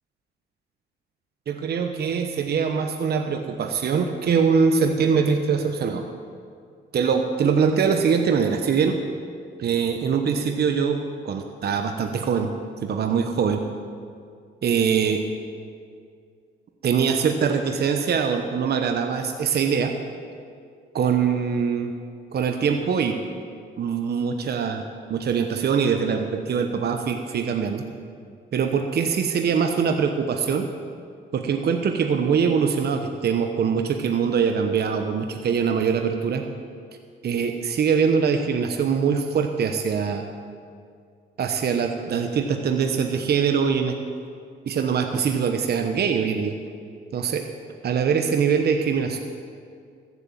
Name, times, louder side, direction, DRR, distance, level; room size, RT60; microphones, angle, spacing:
voice 1, 1.5-6.0 6.9-9.0 9.6-11.0 11.2-12.5 12.8-13.6 14.6-15.2 16.8-19.9 20.9-21.9 22.3-23.2 23.8-24.8 25.1-27.8 28.5-30.7 31.3-36.4 37.2-40.3 41.4-44.0 44.7-46.5 47.1-47.4 47.8-49.2, right 6 dB, 55° right, 5 dB, 1.0 m, -23 dB
14.5 x 8.2 x 7.5 m, 2.2 s
cardioid pair, 90°, 20 cm